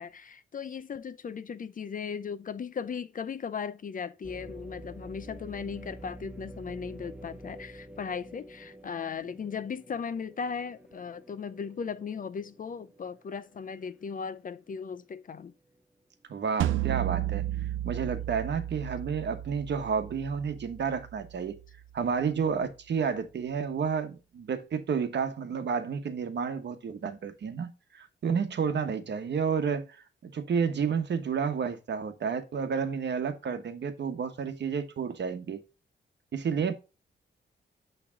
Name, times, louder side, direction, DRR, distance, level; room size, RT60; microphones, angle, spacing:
voice 1, 0.0-15.5, left 6 dB, 45° left, 0.5 m, -37 dB
sound 1, 4.2-14.2 14.7-14.8 15.4-15.8, right 1 dB, 5° right, 0.6 m, -49 dB
voice 2, 16.3-17.5 17.8-21.6 21.9-30.0 30.2-35.6 36.3-36.7, right 6 dB, 60° right, 1.1 m, -31 dB
sound 2, 16.6-21.7, right 13 dB, 90° right, 0.5 m, -33 dB
8.6 x 3.3 x 3.5 m
cardioid pair, 105°, 20 cm